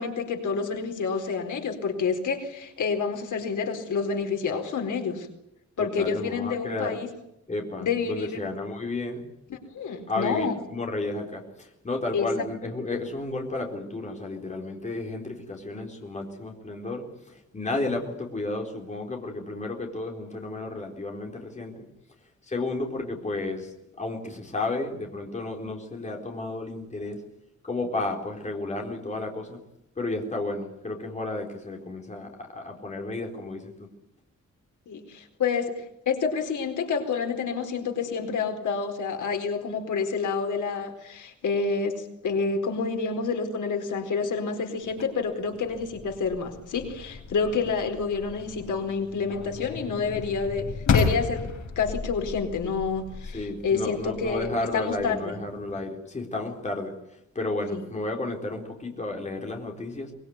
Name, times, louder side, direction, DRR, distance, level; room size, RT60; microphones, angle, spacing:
voice 1, 0.0-5.3 5.8-7.1 7.8-8.4 9.5-10.5 12.1-12.3 34.9-35.7 36.1-50.7 50.9-51.4 51.8-55.3 57.7-57.8, left 5 dB, 85° left, 4 dB, 4.5 m, -28 dB
voice 2, 5.8-7.0 7.5-9.2 10.1-21.8 22.4-27.2 27.6-29.6 30.0-33.9 53.3-56.9 57.3-60.1, left 2 dB, 25° left, 1 dB, 4.2 m, -32 dB
sound 1, 44.8-55.8, left 5 dB, 70° left, 6.0 m, -33 dB
23.5 x 22.0 x 9.5 m, 0.82 s
wide cardioid pair, 180°, 30 cm